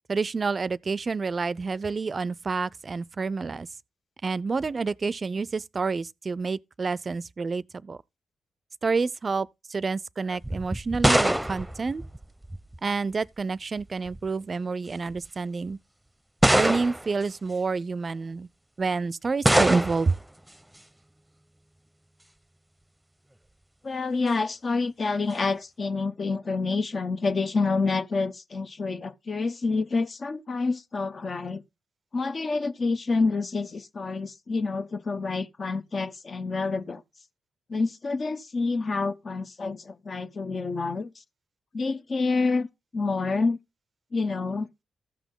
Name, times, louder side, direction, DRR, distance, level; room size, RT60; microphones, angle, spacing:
voice 1, 0.1-3.7 4.2-8.0 8.8-12.0 12.8-15.8 16.5-18.5 18.8-20.2, right 4 dB, 45° right, 0.4 m, -28 dB
sound 1, 10.4-12.8 13.8-14.3 15.1-15.2 16.4-17.2 19.4-20.2, right 1 dB, 10° right, 0.7 m, -23 dB
voice 2, 23.8-31.6 32.1-37.0 37.7-41.1 41.7-42.7 42.9-43.6 44.1-44.7, left 3 dB, 50° left, 0.8 m, -28 dB
14.0 x 6.0 x 3.7 m
supercardioid pair, 45°, 0 cm